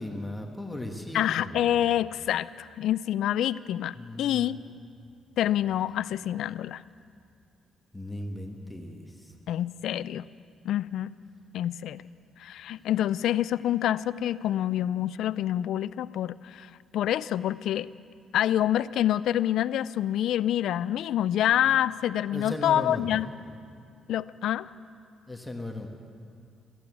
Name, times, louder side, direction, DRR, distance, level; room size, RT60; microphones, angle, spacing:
voice 1, 0.0-1.9 4.0-4.5 7.9-9.3 22.3-23.2 25.3-25.9, left 1 dB, 10° left, 2 dB, 1.5 m, -37 dB
voice 2, 1.1-4.6 5.4-6.8 9.5-10.2 10.6-11.1 11.5-12.0 12.4-16.7 16.9-17.9 18.3-23.3 24.1-24.7, left 11 dB, 80° left, 17 dB, 0.3 m, -27 dB
15.0 x 11.5 x 8.1 m, 2.3 s
cardioid pair, 90°, 0 cm